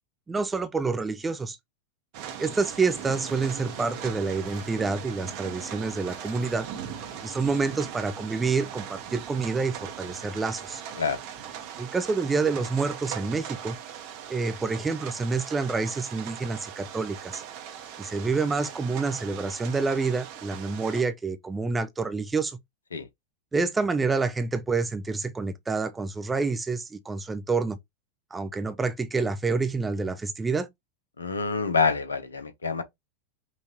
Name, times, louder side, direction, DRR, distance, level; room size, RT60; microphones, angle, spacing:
voice 1, 0.3-1.6 2.4-6.7 7.2-10.8 11.8-13.8 14.3-17.4 18.0-22.6 23.5-27.8 28.3-30.7, right 4 dB, 15° right, 0.6 m, -28 dB
sound 1, 2.1-21.0, right 9 dB, 45° right, 0.9 m, -40 dB
sound 2, 2.9-7.8, left 3 dB, 35° left, 2.1 m, -52 dB
voice 2, 31.2-32.8, left 5 dB, 75° left, 0.8 m, -26 dB
5.7 x 2.6 x 3.1 m
figure-of-eight pair, 90°, 0 cm